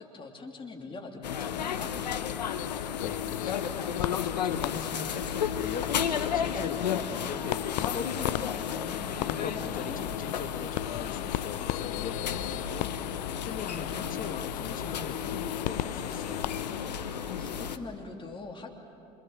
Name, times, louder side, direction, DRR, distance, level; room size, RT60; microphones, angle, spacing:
voice 1, 0.0-1.9 8.6-10.2 17.4-18.7, left 3 dB, 25° left, 0 dB, 3.2 m, -43 dB
sound 1, 1.2-17.8, left 8 dB, 90° left, 1.0 m, -33 dB
sound 2, 1.2-17.3, left 18 dB, 65° left, 0.6 m, -38 dB
voice 2, 3.0-8.6 9.2-12.9 13.3-16.7, left 6 dB, 40° left, 6 dB, 2.1 m, -40 dB
27.5 x 23.0 x 7.7 m, 2.7 s
hypercardioid pair, 70°, 21 cm